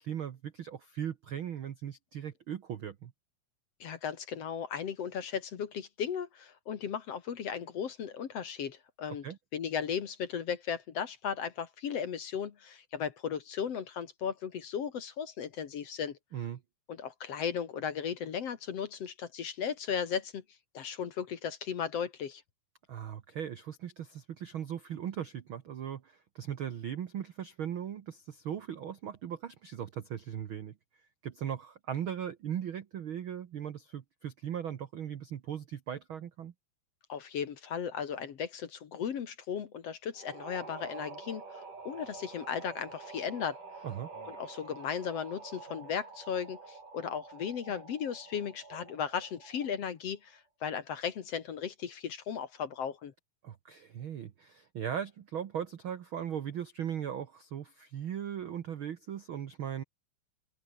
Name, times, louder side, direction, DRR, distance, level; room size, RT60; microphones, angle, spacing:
voice 1, 0.0-3.1 9.2-9.4 16.3-16.6 22.9-30.7 31.2-36.5 43.8-44.1 53.4-59.8, right 9 dB, 85° right, 1.1 m, -38 dB
voice 2, 3.8-9.2 9.5-16.2 16.9-20.4 20.7-22.4 37.1-43.6 44.3-53.1, left 7 dB, 55° left, 2.2 m, -36 dB
sound 1, 40.1-49.9, right 4 dB, 60° right, 8.3 m, -48 dB
open air
omnidirectional pair, 4.1 m